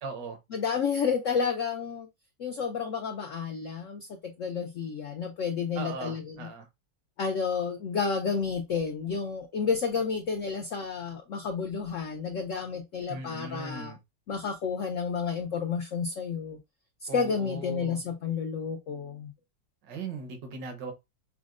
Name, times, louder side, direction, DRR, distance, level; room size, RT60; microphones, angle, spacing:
voice 1, 0.0-0.4 5.8-6.7 13.1-14.0 17.1-18.0 19.8-20.9, right 4 dB, 70° right, 1.6 m, -39 dB
voice 2, 0.5-2.1 2.4-6.5 7.2-13.9 14.3-16.6 17.0-19.3, left 5 dB, 80° left, 0.7 m, -31 dB
6.0 x 2.1 x 2.4 m
omnidirectional pair, 2.0 m